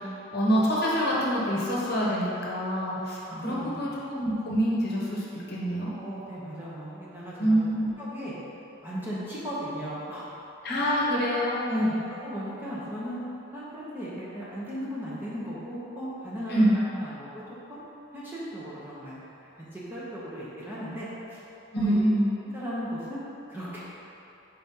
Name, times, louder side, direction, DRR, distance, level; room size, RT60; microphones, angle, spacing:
voice 1, 0.0-5.9 7.4-7.9 10.6-11.9 16.5-16.8 21.7-22.3, equal, 50° left, -5 dB, 1.0 m, -26 dB
voice 2, 2.9-3.7 5.9-7.6 8.0-8.3 8.8-10.2 10.8-10.9 11.7-13.2 13.5-17.3 17.7-17.8 18.1-19.2 19.6-21.4 21.7-22.0 22.5-23.2 23.5-23.8, equal, 10° right, -9 dB, 0.9 m, -36 dB
4.6 x 4.1 x 5.4 m, 3.0 s
head